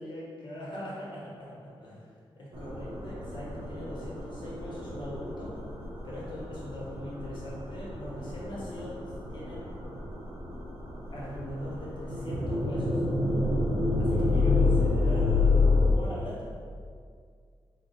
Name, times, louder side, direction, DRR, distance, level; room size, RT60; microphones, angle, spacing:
voice 1, 0.0-2.1 2.4-5.6 6.0-9.0 9.3-9.7 11.1-13.0 14.0-16.4, left 1 dB, 55° left, -6 dB, 1.0 m, -41 dB
sound 1, 2.5-15.9, left 3 dB, 65° right, 0.7 m, -29 dB
4.1 x 2.2 x 4.1 m, 2.1 s
wide cardioid pair, 170°, 9 cm